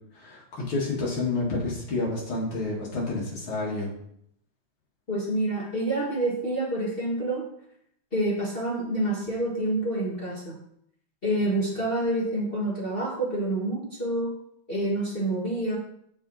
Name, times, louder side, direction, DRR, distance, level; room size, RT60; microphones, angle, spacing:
voice 1, 0.1-3.9, left 3 dB, 85° left, -5 dB, 2.9 m, -29 dB
voice 2, 5.1-7.4 8.1-10.6 11.2-14.3 14.7-15.8, right 1 dB, 30° left, -5 dB, 1.7 m, -27 dB
7.6 x 6.6 x 4.2 m, 0.71 s
omnidirectional pair, 2.2 m